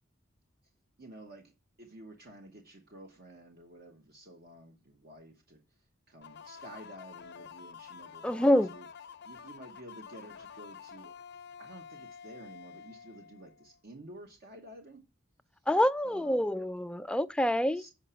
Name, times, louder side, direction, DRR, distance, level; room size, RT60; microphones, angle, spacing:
voice 1, 1.0-1.5 1.8-5.6 6.1-8.9 9.2-11.1 11.6-15.0 16.0-16.5 17.7-17.9, right 1 dB, 50° right, 1.0 m, -51 dB
sound 1, 6.2-13.8, left 7 dB, 55° left, 0.6 m, -49 dB
voice 2, 8.2-8.7 15.7-17.8, left 1 dB, 5° left, 0.3 m, -26 dB
7.2 x 5.0 x 5.5 m
head